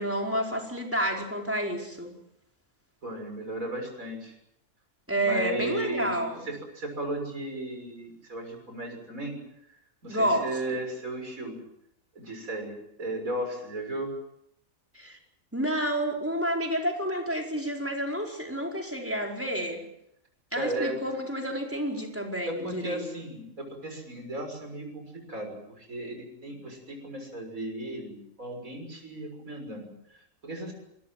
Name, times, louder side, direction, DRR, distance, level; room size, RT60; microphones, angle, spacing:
voice 1, 0.0-2.1 5.1-6.4 10.1-10.8 14.9-15.2 15.5-19.8 20.5-23.0, right 1 dB, 10° right, 1 dB, 4.8 m, -29 dB
voice 2, 3.0-4.3 5.2-9.3 10.0-11.6 12.1-14.1 20.5-21.0 22.5-30.7, right 1 dB, 70° right, 3 dB, 6.8 m, -35 dB
26.5 x 21.5 x 7.5 m, 0.75 s
omnidirectional pair, 1.5 m